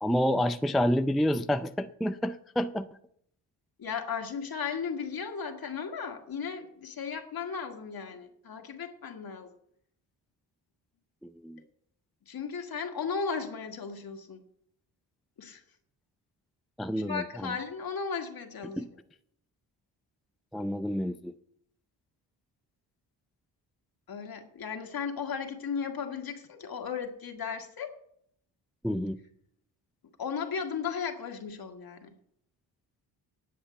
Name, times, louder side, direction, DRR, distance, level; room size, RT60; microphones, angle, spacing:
voice 1, 0.0-2.9 11.2-11.6 16.8-17.5 18.8-18.9 20.5-21.3 28.8-29.2, equal, ahead, 9 dB, 0.4 m, -29 dB
voice 2, 3.8-9.6 12.3-14.4 15.4-15.6 17.1-18.9 24.1-28.0 30.2-32.1, left 6 dB, 55° left, 4 dB, 1.9 m, -35 dB
10.0 x 7.9 x 8.2 m, 0.70 s
cardioid pair, 95°, 44 cm